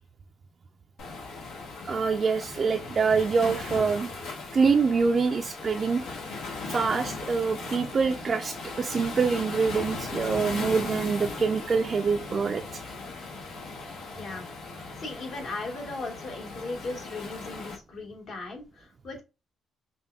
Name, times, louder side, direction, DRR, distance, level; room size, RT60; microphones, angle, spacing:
Waves surf, 1.0-17.8, left 3 dB, 85° left, 1.1 m, -38 dB
voice 1, 1.9-4.1 4.5-6.0 6.7-12.8, right 5 dB, 40° right, 0.3 m, -25 dB
voice 2, 14.1-14.5 14.9-19.2, left 3 dB, 60° left, 1.6 m, -37 dB
5.2 x 2.3 x 2.3 m
cardioid pair, 90°, 0 cm